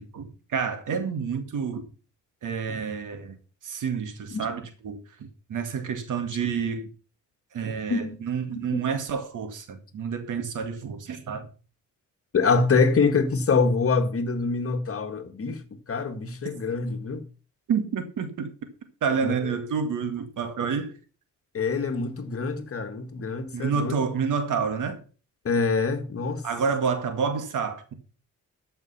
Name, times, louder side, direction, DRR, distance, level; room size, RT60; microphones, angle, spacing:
voice 1, 0.0-1.9 2.4-3.4 3.6-6.9 7.5-11.5 17.7-18.5 19.0-20.9 23.5-25.0 26.4-27.9, right 6 dB, 70° right, 2.1 m, -29 dB
voice 2, 12.3-17.3 19.2-19.6 21.5-23.9 25.5-26.5, left 4 dB, 45° left, 1.7 m, -25 dB
13.0 x 5.8 x 5.6 m
cardioid pair, 85°, 32 cm